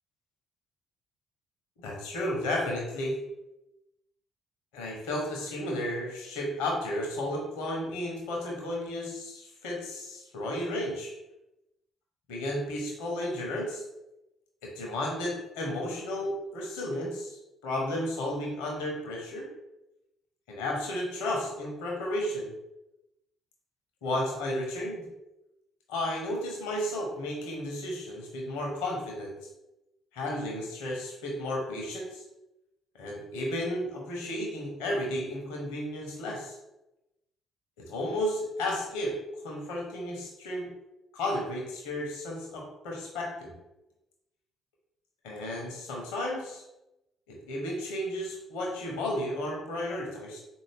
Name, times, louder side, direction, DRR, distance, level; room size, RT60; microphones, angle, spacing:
voice 1, 1.8-3.1 4.7-11.1 12.3-13.8 14.6-19.4 20.5-22.5 24.0-25.1 25.9-29.3 30.1-32.2 33.0-36.6 37.9-39.1 39.4-40.7 41.1-43.5 45.2-46.6 47.3-50.4, left 1 dB, 65° left, -1 dB, 0.8 m, -33 dB
3.9 x 2.6 x 3.3 m, 0.92 s
figure-of-eight pair, 45°, 0 cm